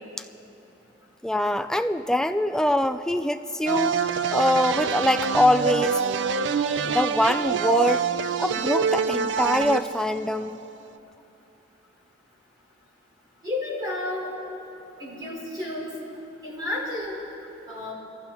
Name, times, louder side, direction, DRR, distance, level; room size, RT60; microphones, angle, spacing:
voice 1, 1.2-4.0 4.3-6.0 6.8-8.0 8.4-10.6, left 1 dB, 5° left, 9 dB, 0.3 m, -23 dB
sound 1, 3.7-10.7, right 6 dB, 65° right, 0.4 m, -26 dB
voice 2, 13.4-14.3 15.0-15.9 16.4-17.2 17.7-17.9, left 2 dB, 25° right, -7 dB, 4.1 m, -31 dB
25.0 x 15.0 x 2.9 m, 2.9 s
head